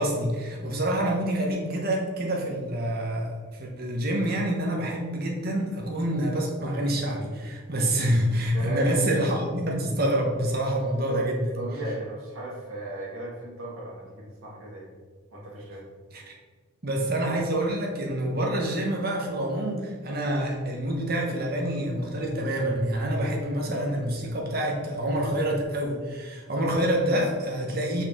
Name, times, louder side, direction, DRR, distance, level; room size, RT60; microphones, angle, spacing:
voice 1, 0.0-11.5 16.1-16.3 16.8-28.0, right 1 dB, 45° right, 0 dB, 1.1 m, -27 dB
voice 2, 8.5-8.9 11.1-11.3 11.6-14.9 15.3-15.9, right 2 dB, 75° right, -4 dB, 1.6 m, -36 dB
5.6 x 4.6 x 3.6 m, 1.5 s
head